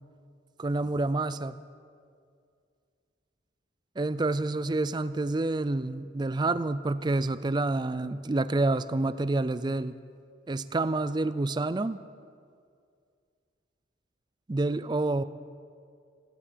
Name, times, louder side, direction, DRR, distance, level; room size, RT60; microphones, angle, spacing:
voice 1, 0.6-1.6 4.0-10.0 10.5-12.0 14.5-15.2, right 2 dB, 25° right, 15 dB, 0.4 m, -28 dB
16.0 x 16.0 x 5.2 m, 2.2 s
head